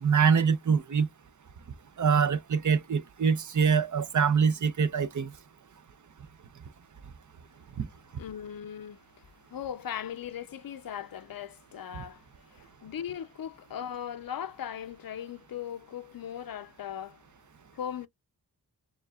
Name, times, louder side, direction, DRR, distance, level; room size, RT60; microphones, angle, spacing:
voice 1, 0.0-1.1 2.0-5.3 7.8-7.9, right 6 dB, 50° right, 0.6 m, -24 dB
voice 2, 8.1-9.0 9.5-17.2 17.7-18.1, left 9 dB, 60° left, 0.6 m, -38 dB
6.6 x 2.4 x 2.3 m
cardioid pair, 40°, 39 cm